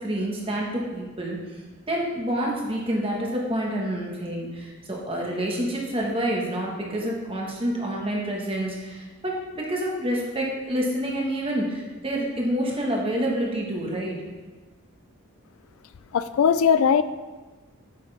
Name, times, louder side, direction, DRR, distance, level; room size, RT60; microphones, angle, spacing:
voice 1, 0.0-1.4 1.9-14.1, right 1 dB, 25° right, -2 dB, 1.5 m, -28 dB
voice 2, 16.1-17.0, left 7 dB, 70° left, 13 dB, 0.3 m, -19 dB
9.4 x 6.5 x 3.5 m, 1.3 s
head